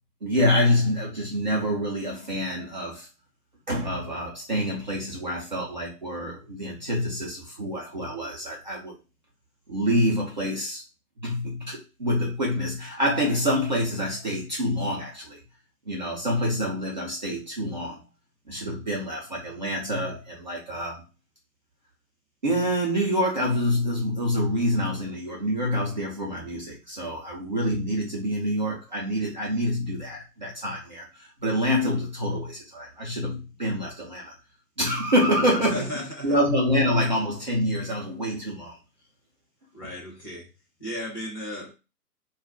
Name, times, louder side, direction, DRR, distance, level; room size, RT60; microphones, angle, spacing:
voice 1, 0.2-3.1 3.7-9.0 9.7-10.8 11.2-15.4 15.9-18.0 18.5-21.0 22.4-34.3 34.8-38.8 39.8-39.9, equal, 30° right, 0.4 m, -26 dB
voice 2, 35.7-36.4 39.7-40.5 40.8-41.7, equal, 15° left, 0.6 m, -35 dB
2.3 x 2.0 x 3.6 m
figure-of-eight pair, 120°, 48 cm